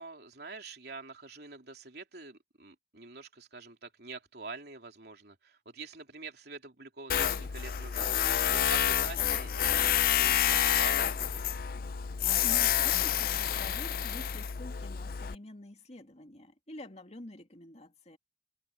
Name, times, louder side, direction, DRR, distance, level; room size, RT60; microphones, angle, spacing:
voice 1, 0.0-11.5, right 4 dB, 65° right, 3.5 m, -46 dB
Tools, 7.1-15.3, left 10 dB, 55° left, 0.5 m, -28 dB
voice 2, 12.4-18.2, left 1 dB, 40° left, 2.4 m, -47 dB
head